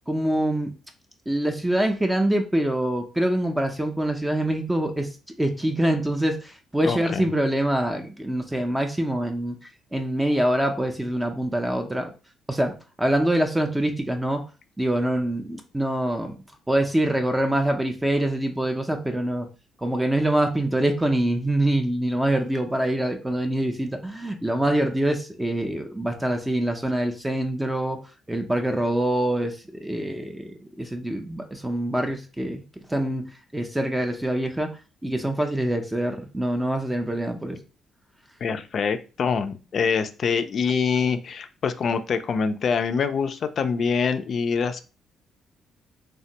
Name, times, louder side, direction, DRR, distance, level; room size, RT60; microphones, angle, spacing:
voice 1, 0.1-0.7 1.3-5.1 5.4-9.6 9.9-12.1 12.5-14.4 14.8-16.4 16.7-19.5 19.8-28.0 28.3-32.6 32.9-37.6, right 1 dB, 10° right, 5 dB, 0.4 m, -25 dB
voice 2, 6.8-7.2 38.4-44.8, left 6 dB, 55° left, 9 dB, 0.3 m, -25 dB
3.2 x 2.1 x 2.7 m, 0.33 s
cardioid pair, 90°, 0 cm